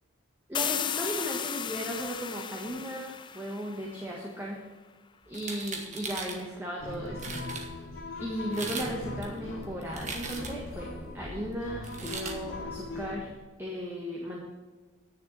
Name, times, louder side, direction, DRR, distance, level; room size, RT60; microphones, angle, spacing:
sound 1, 0.5-4.2, left 8 dB, 20° left, 0.3 m, -35 dB
voice 1, 0.5-4.6 5.3-7.8 8.2-13.3 13.6-14.4, equal, 10° right, -3 dB, 1.6 m, -36 dB
sound 2, 5.3-6.4 6.9-7.0 7.2-7.7 8.4-8.9 9.2-10.7 11.8-12.4, right 4 dB, 35° right, 1.4 m, -38 dB
sound 3, 6.8-13.2, left 2 dB, 65° left, 2.5 m, -40 dB
10.5 x 6.7 x 7.1 m, 1.3 s
head